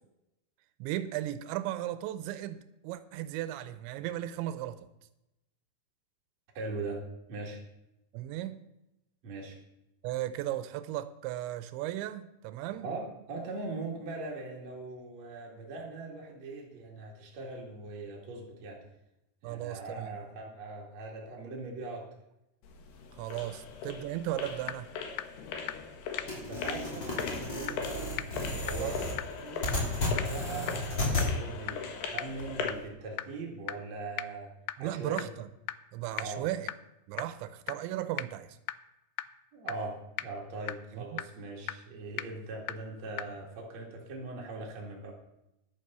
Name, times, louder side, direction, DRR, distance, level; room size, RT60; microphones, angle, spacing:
voice 1, 0.8-4.8 8.1-8.6 10.0-12.9 19.4-20.2 23.2-24.9 28.8-29.1 34.8-35.5 35.9-36.7 37.1-38.6 40.9-41.2, right 13 dB, 80° right, 12 dB, 2.9 m, -36 dB
voice 2, 6.5-7.0 7.3-7.6 9.2-9.6 12.8-18.8 19.4-22.0 26.4-28.1 28.6-34.5 34.8-35.3 36.2-36.4 39.5-45.1, right 3 dB, 45° right, -2 dB, 2.5 m, -41 dB
sound 1, 22.6-32.9, left 5 dB, 65° left, 3.3 m, -40 dB
sound 2, 24.2-24.3 24.7-24.8 25.2-25.3 25.7-25.8 26.2-26.3 26.7-26.8 27.2-27.3 27.7-27.8 28.2-28.3 28.7-28.8 29.2-29.3 29.7-29.8 30.2-30.3 30.7-30.8 31.2-31.3 31.7-31.8 32.2-32.3 32.7-32.8 33.2-33.3 33.7-33.8 34.2-34.3 34.7-34.8 35.2-35.3 35.7-35.8 36.2-36.3 36.7-36.8 37.2-37.3 37.7-37.8 38.2-38.3 38.7-38.8 39.2-39.3 39.7-39.8 40.2-40.3 40.7-40.8 41.2-41.3 41.7-41.8 42.2-42.3 42.7-42.8 43.2-43.3, left 12 dB, 85° left, 2.6 m, -38 dB
sound 3, 26.3-31.3, left 2 dB, 25° left, 3.1 m, -33 dB
11.0 x 8.4 x 6.7 m, 0.90 s
omnidirectional pair, 5.3 m